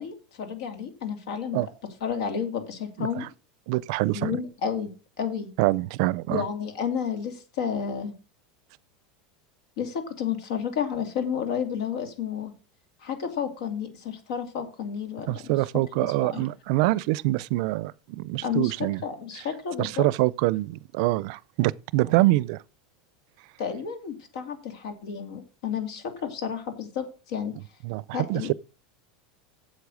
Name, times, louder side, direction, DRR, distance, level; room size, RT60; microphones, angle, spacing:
voice 1, 0.0-1.7 2.0-3.2 4.1-4.9 5.2-5.5 6.3-8.1 9.8-12.5 13.0-15.4 16.2-16.5 18.4-18.7 19.0-20.1 23.6-27.5 28.1-28.5, left 7 dB, 80° left, 2.6 m, -31 dB
voice 2, 3.0-3.3 3.7-4.4 5.6-6.4 15.3-19.0 19.4-19.5 19.8-22.6 27.8-28.5, right 18 dB, 65° right, 0.5 m, -25 dB
8.4 x 7.7 x 6.3 m
supercardioid pair, 135°, 3 cm